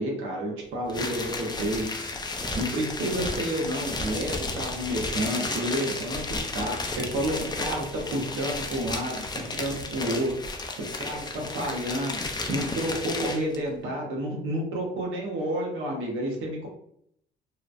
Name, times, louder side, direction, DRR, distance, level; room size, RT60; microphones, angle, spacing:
voice 1, 0.0-2.0 2.5-10.3 11.0-12.2 12.5-16.7, right 1 dB, 80° right, -1 dB, 0.9 m, -30 dB
sound 1, 0.9-13.6, left 2 dB, 20° left, 0.4 m, -33 dB
3.0 x 2.1 x 2.4 m, 0.71 s
cardioid pair, 90°, 20 cm